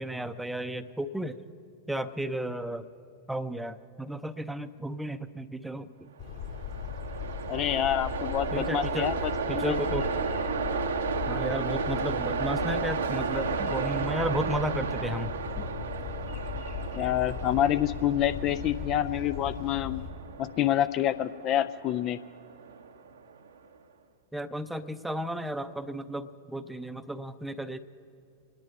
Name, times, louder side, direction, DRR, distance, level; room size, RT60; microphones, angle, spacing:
voice 1, 0.0-1.4 1.9-2.9 3.3-6.1 8.5-9.1 9.5-10.1 11.3-15.7 24.3-27.8, right 1 dB, 5° right, 11 dB, 0.6 m, -33 dB
sound 1, 6.2-20.1, left 7 dB, 55° left, 2.1 m, -37 dB
Train, 6.3-23.5, right 5 dB, 70° right, 0.8 m, -34 dB
voice 2, 7.5-9.8 16.9-20.0 20.4-22.2, left 11 dB, 35° left, 13 dB, 0.4 m, -27 dB
25.0 x 10.5 x 5.3 m, 2.5 s
figure-of-eight pair, 90°, 0 cm